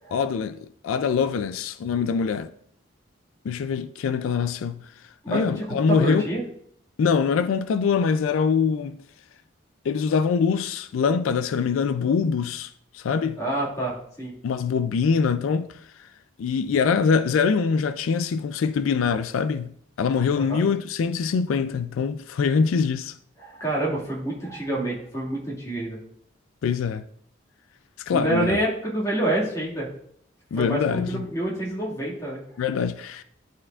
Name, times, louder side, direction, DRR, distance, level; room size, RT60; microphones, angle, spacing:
voice 1, 0.1-2.5 3.4-4.8 5.3-6.2 7.0-9.0 9.8-13.4 14.4-15.8 16.4-19.7 20.0-23.1 26.6-27.0 28.1-28.6 30.5-31.2 32.6-33.2, left 6 dB, 90° left, 0.3 m, -24 dB
voice 2, 5.2-6.4 13.4-14.3 20.3-20.6 23.4-26.0 28.1-29.9 30.5-32.4, right 1 dB, 15° left, 2.0 m, -27 dB
11.0 x 4.4 x 2.4 m
head